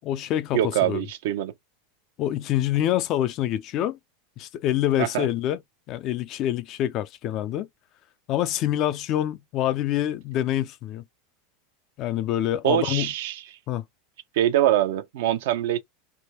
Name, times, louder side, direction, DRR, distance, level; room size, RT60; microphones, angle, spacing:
voice 1, 0.0-1.0 2.2-4.0 4.4-5.6 5.9-7.7 8.3-11.0 12.0-13.1 13.7-13.8, left 12 dB, 45° left, 0.4 m, -26 dB
voice 2, 0.5-1.5 5.0-5.3 12.6-13.4 14.3-15.8, right 12 dB, 75° right, 0.7 m, -23 dB
3.5 x 2.2 x 2.9 m
supercardioid pair, 125°, 0 cm